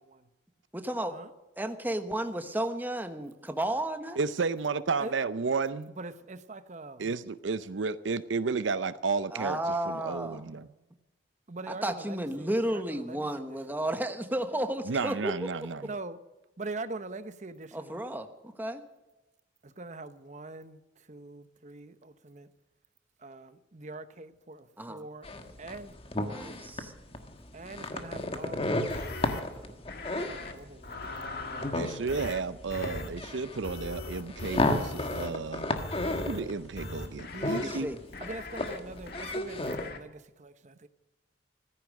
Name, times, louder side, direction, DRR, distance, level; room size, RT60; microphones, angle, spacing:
voice 1, 0.7-1.1 1.6-4.2 9.3-10.4 11.7-15.3 17.7-18.8 24.8-25.0 26.3-26.9 37.6-38.0, right 1 dB, 10° right, 1.2 m, -33 dB
voice 2, 4.2-5.9 7.0-10.7 14.9-15.9 31.7-35.7 36.3-37.9, right 4 dB, 80° right, 0.6 m, -32 dB
voice 3, 5.9-7.0 11.5-14.0 15.8-16.2 16.6-18.0 19.6-22.5 23.2-25.3 25.6-25.9 26.2-26.5 27.5-29.8 30.2-31.2 31.4-32.2 32.8-33.4 37.0-37.8 38.2-40.9, right 2 dB, 40° right, 0.9 m, -44 dB
sound 1, 25.2-39.9, left 1 dB, 30° left, 1.5 m, -34 dB
sound 2, 28.9-29.4 29.9-30.5 30.8-31.8 32.1-32.4 32.7-33.1 33.6-35.3 35.8-36.4 36.8-37.7 38.1-38.8 39.1-39.4 39.7-40.0, left 2 dB, 55° left, 1.9 m, -40 dB
15.5 x 14.0 x 6.3 m
head